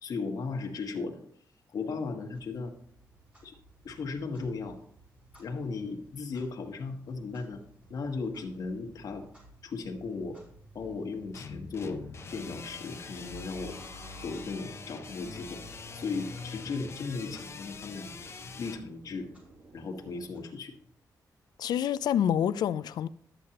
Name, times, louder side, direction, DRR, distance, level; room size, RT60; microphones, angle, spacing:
voice 1, 0.0-1.2 1.7-2.7 3.4-3.5 3.8-4.8 5.4-7.6 7.9-9.2 9.6-10.4 10.7-12.0 12.3-13.8 14.2-15.6 15.9-18.2 18.6-19.3 19.7-20.7, left 4 dB, 60° left, 1.3 m, -36 dB
Clock, 2.3-21.0, equal, 20° right, 3.7 m, -55 dB
sound 1, 11.3-18.8, left 5 dB, 40° left, 0.7 m, -44 dB
sound 2, 12.2-20.3, right 2 dB, 55° right, 1.4 m, -55 dB
voice 2, 21.6-23.1, left 9 dB, 80° left, 0.4 m, -27 dB
11.5 x 8.3 x 2.9 m
cardioid pair, 115°, 7 cm